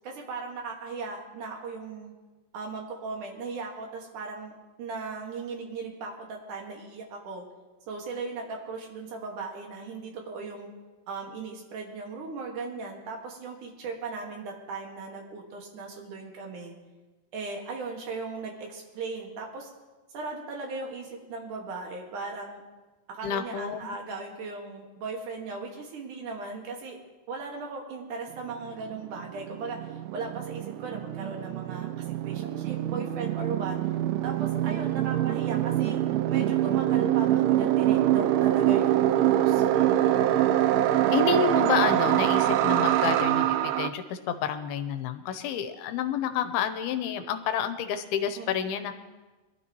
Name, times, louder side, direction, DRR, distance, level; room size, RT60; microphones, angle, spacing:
voice 1, 0.0-2.1 2.5-4.5 4.8-7.5 7.9-10.7 11.1-16.7 17.3-19.7 20.1-22.6 23.1-27.0 27.3-33.8 34.2-36.0 36.3-40.4 48.4-48.8, right 4 dB, 60° right, 1 dB, 3.0 m, -37 dB
voice 2, 23.2-23.9 41.1-48.9, left 8 dB, 80° left, 9 dB, 2.6 m, -29 dB
sound 1, 28.4-28.5 28.6-43.9, right 12 dB, 85° right, 2.1 m, -25 dB
22.0 x 12.5 x 3.1 m, 1.2 s
omnidirectional pair, 4.6 m